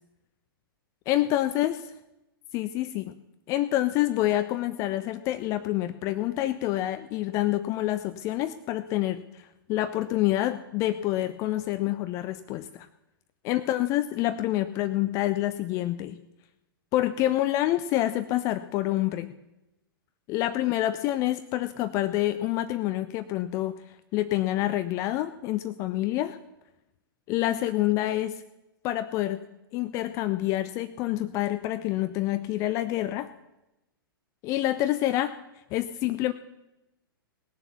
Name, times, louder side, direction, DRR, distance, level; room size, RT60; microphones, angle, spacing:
voice 1, 1.1-1.8 2.5-3.1 3.5-12.9 13.4-16.2 16.9-19.3 20.3-23.8 24.1-26.4 27.3-28.4 28.8-29.4 29.7-33.3 34.4-35.3 35.7-36.3, left 14 dB, 25° left, 12 dB, 0.4 m, -27 dB
18.5 x 7.0 x 7.1 m, 0.94 s
figure-of-eight pair, 110°, 12 cm